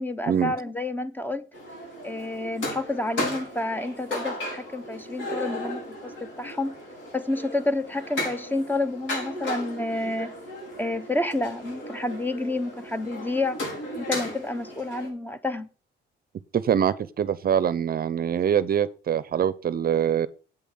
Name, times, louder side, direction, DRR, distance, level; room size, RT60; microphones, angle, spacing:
voice 1, 0.0-1.5 2.0-6.7 7.1-10.3 10.8-13.6 13.9-15.7, left 2 dB, 10° left, 0.9 m, -29 dB
sound 1, 1.5-15.1, left 1 dB, 70° left, 5.1 m, -35 dB
voice 2, 16.5-20.3, right 8 dB, 50° right, 0.6 m, -24 dB
8.2 x 6.9 x 5.6 m
cardioid pair, 90°, 20 cm